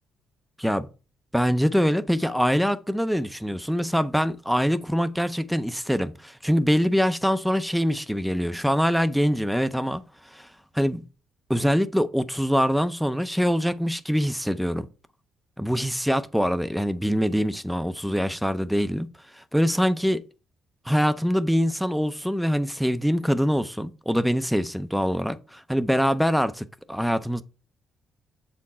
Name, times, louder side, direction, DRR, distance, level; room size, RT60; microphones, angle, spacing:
voice 1, 1.3-10.0 10.3-10.5 10.7-11.0 11.5-14.9 15.6-19.1 19.3-20.2 20.9-27.4, equal, ahead, 0.5 m, -24 dB
7.1 x 4.4 x 4.2 m
cardioid pair, 90°, 0 cm